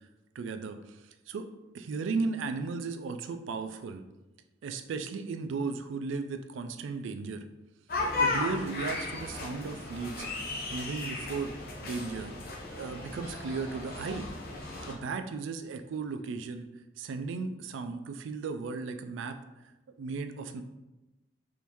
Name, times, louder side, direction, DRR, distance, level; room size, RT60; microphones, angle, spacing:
voice 1, 0.4-1.0 1.3-1.5 1.7-4.0 4.6-7.4 8.2-10.3 10.7-11.5 11.8-12.3 12.7-14.3 14.9-16.7 17.0-19.4 20.0-20.6, right 4 dB, 90° right, 8 dB, 0.3 m, -35 dB
sound 1, 7.9-14.9, left 3 dB, 50° left, 0.7 m, -35 dB
3.5 x 2.6 x 2.9 m, 1.0 s
head